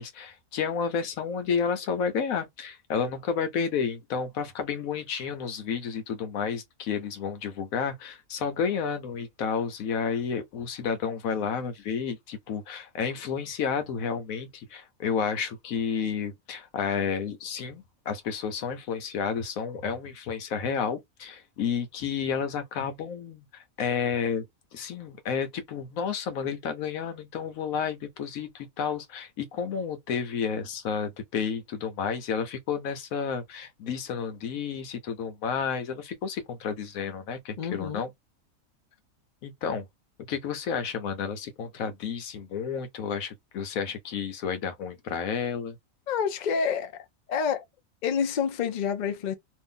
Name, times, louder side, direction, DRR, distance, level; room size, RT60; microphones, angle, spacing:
voice 1, 0.0-24.4 24.7-38.1 39.4-39.9 40.3-45.8, left 6 dB, 80° left, 1.1 m, -31 dB
voice 2, 37.6-38.0 46.1-46.9 47.3-47.6 48.0-49.4, left 7 dB, 50° left, 0.5 m, -28 dB
2.7 x 2.5 x 3.7 m
omnidirectional pair, 1.4 m